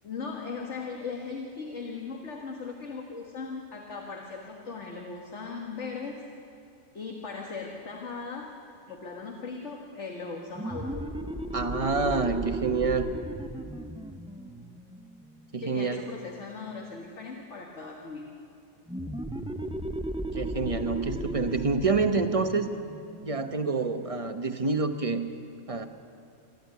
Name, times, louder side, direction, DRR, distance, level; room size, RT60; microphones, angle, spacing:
voice 1, 0.0-6.2 6.9-8.5 8.9-11.1 15.6-18.3, left 4 dB, 55° left, 1 dB, 1.9 m, -38 dB
sound 1, 10.5-15.8 18.9-24.2, right 1 dB, 5° right, 0.4 m, -36 dB
voice 2, 11.5-13.1 15.5-16.0 20.3-22.7 23.2-25.3 25.7-25.9, right 4 dB, 25° right, 7 dB, 1.0 m, -27 dB
28.0 x 12.0 x 9.4 m, 2.5 s
omnidirectional pair, 1.4 m